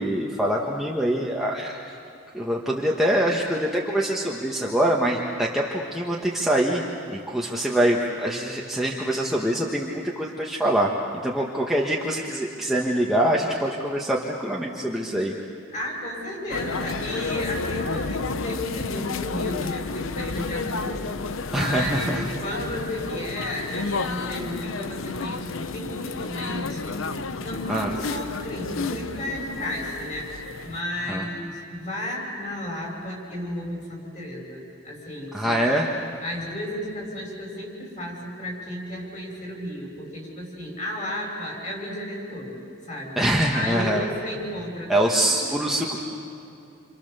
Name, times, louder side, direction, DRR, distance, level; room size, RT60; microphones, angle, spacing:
voice 1, 0.0-1.8 2.3-6.8 7.1-15.3 21.5-22.2 27.7-27.9 31.1-31.2 35.3-35.9 43.2-44.0 44.9-46.0, right 1 dB, ahead, -3 dB, 1.4 m, -24 dB
voice 2, 15.7-27.0 27.4-30.4 30.6-35.7 36.2-43.2 43.5-44.9 45.2-45.5, left 1 dB, 35° left, -1 dB, 7.0 m, -33 dB
sound 1, 16.5-30.8, left 4 dB, 80° left, 0.8 m, -31 dB
29.5 x 27.0 x 6.9 m, 2.6 s
head